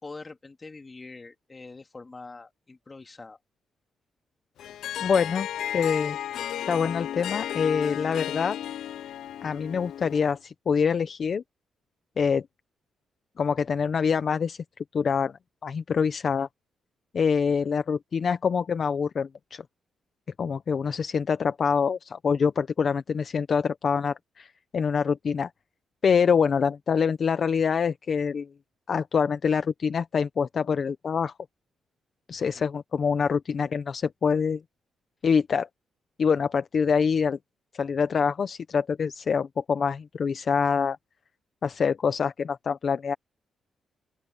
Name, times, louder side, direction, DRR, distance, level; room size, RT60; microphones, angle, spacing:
voice 1, 0.0-3.4 16.4-16.5 17.4-17.7 32.4-32.7, left 3 dB, 20° left, 2.2 m, -44 dB
Harp, 4.6-10.4, left 11 dB, 80° left, 0.4 m, -34 dB
voice 2, 5.0-5.5 5.7-6.2 6.7-8.6 9.4-11.4 12.2-12.5 13.4-14.6 14.9-15.3 15.6-16.5 17.1-19.6 20.4-25.5 26.0-28.5 28.9-31.3 32.3-34.6 35.2-35.7 36.2-37.4 37.7-41.0 41.6-43.1, left 6 dB, 40° left, 0.7 m, -25 dB
open air
wide cardioid pair, 160°, 0 cm